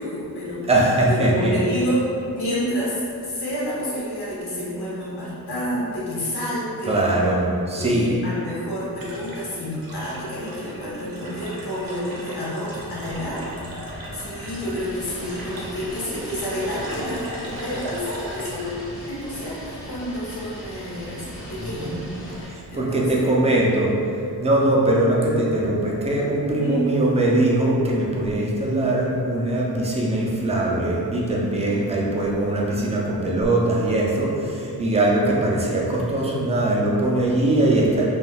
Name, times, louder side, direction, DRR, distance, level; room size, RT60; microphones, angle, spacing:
voice 1, 0.0-0.7 1.1-2.1 2.3-7.2 7.8-13.9 14.1-23.3 26.6-26.8, equal, 80° left, -8 dB, 0.9 m, -29 dB
voice 2, 0.7-1.6 6.9-8.1 21.6-22.0 22.5-38.1, right 1 dB, 20° right, -3 dB, 0.3 m, -21 dB
sound 1, 8.6-20.0, right 1 dB, 65° right, 0.6 m, -39 dB
sound 2, 12.8-22.5, equal, 20° left, 1.0 m, -39 dB
3.2 x 2.3 x 2.3 m, 2.5 s
wide cardioid pair, 150°, 38 cm